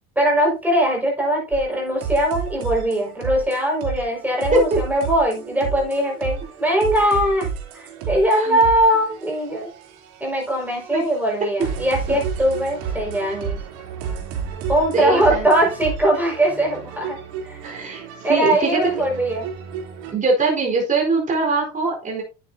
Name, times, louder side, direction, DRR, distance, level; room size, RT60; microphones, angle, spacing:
voice 1, 0.2-7.5 7.7-9.7 10.2-13.6 14.7-17.6 18.2-19.5, right 1 dB, 5° right, 0 dB, 5.4 m, -21 dB
sound 1, 1.5-20.1, right 7 dB, 85° right, 3.3 m, -32 dB
voice 2, 14.9-15.5 17.6-18.8 20.1-22.2, right 3 dB, 25° right, 0 dB, 4.3 m, -21 dB
9.7 x 9.3 x 2.8 m, 0.29 s
cardioid pair, 120°, 30 cm